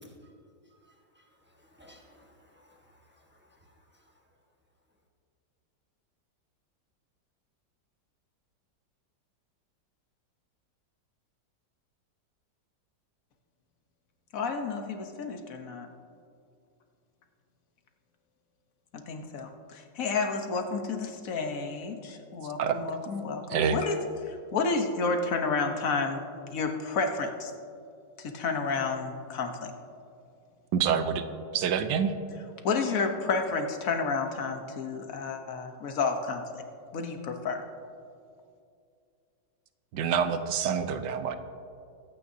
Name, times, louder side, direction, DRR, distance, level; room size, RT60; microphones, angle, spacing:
voice 1, 1.5-3.4, left 1 dB, 5° right, -1 dB, 1.0 m, -56 dB
voice 2, 14.3-15.9 19.1-24.0 24.3-27.5 28.2-29.7 32.6-36.4 36.9-37.6, left 4 dB, 55° left, 5 dB, 1.3 m, -31 dB
voice 3, 30.7-31.2 31.5-32.1 39.9-41.3, right 7 dB, 75° right, 9 dB, 1.3 m, -26 dB
22.0 x 9.0 x 2.8 m, 2.4 s
omnidirectional pair, 1.9 m